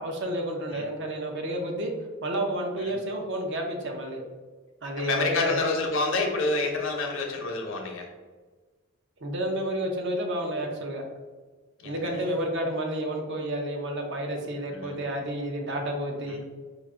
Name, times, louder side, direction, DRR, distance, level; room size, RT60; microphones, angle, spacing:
voice 1, 0.0-1.9 2.2-4.2 4.8-5.6 9.2-11.0 11.8-16.4, right 1 dB, 55° right, 2 dB, 0.7 m, -30 dB
voice 2, 5.0-8.1 11.8-12.3 14.7-15.0 16.3-16.4, left 3 dB, 60° left, 1 dB, 0.8 m, -28 dB
4.6 x 2.5 x 3.6 m, 1.4 s
head